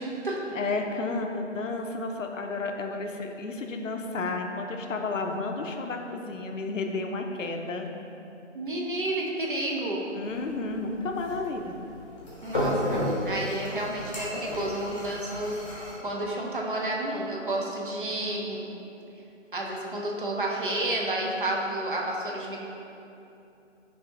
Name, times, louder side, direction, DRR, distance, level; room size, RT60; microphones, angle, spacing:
voice 1, 0.0-0.4 8.5-10.0 12.4-18.6 19.5-22.6, right 1 dB, 45° right, -2 dB, 0.5 m, -31 dB
voice 2, 0.5-7.9 10.1-11.8, left 3 dB, 90° left, 4 dB, 0.5 m, -32 dB
sound 1, 10.2-15.9, left 1 dB, 25° left, 0.7 m, -33 dB
5.6 x 2.7 x 2.4 m, 2.8 s
figure-of-eight pair, 155°, 38 cm